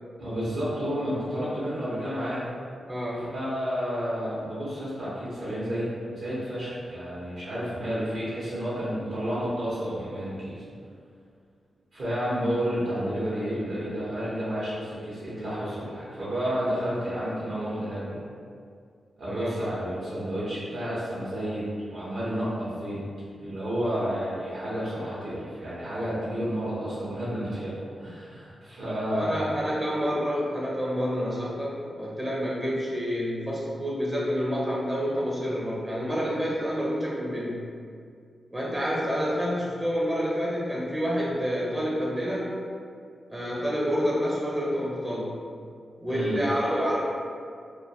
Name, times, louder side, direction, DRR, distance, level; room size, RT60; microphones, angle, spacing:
voice 1, 0.2-2.5 3.1-10.6 11.9-18.2 19.2-23.0 23.4-29.5 46.1-46.4, equal, 70° right, -9 dB, 0.6 m, -31 dB
voice 2, 2.8-3.2 19.3-19.5 29.1-37.6 38.5-42.5 43.3-45.4 46.0-47.0, equal, 25° right, -5 dB, 0.5 m, -28 dB
2.2 x 2.1 x 2.6 m, 2.2 s
cardioid pair, 55°, 0 cm